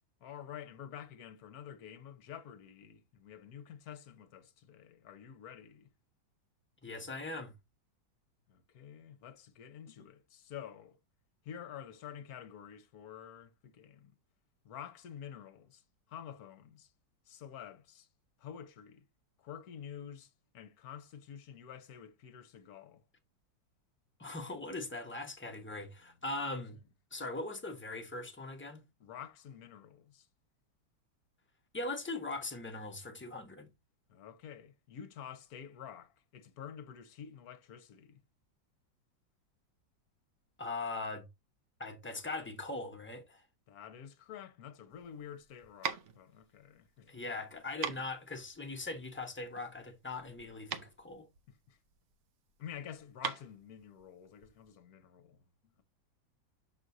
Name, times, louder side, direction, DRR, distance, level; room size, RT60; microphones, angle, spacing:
voice 1, 0.2-5.9 8.5-11.0 11.4-14.1 14.6-15.8 16.1-16.9 17.3-18.1 18.4-19.0 19.4-23.0 29.0-30.3 34.1-38.2 43.7-47.2 51.7-51.8 52.6-55.4, left 9 dB, 60° left, 1.3 m, -49 dB
voice 2, 6.8-7.5 24.2-26.8 27.1-28.8 31.7-33.7 40.6-41.3 41.8-43.4 47.1-51.3, left 2 dB, 10° left, 0.7 m, -40 dB
sound 1, 44.9-54.7, right 7 dB, 65° right, 0.7 m, -43 dB
6.2 x 6.2 x 2.7 m
omnidirectional pair, 2.1 m